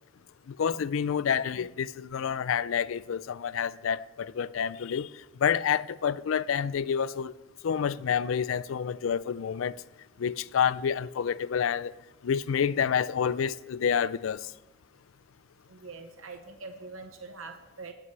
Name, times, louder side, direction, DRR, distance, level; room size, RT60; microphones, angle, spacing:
voice 1, 0.5-5.1 5.4-7.4 7.6-9.7 10.2-11.9 12.2-14.5, left 7 dB, 80° left, 0.4 m, -28 dB
voice 2, 15.7-17.9, right 3 dB, 90° right, 1.0 m, -43 dB
16.0 x 11.0 x 3.3 m
head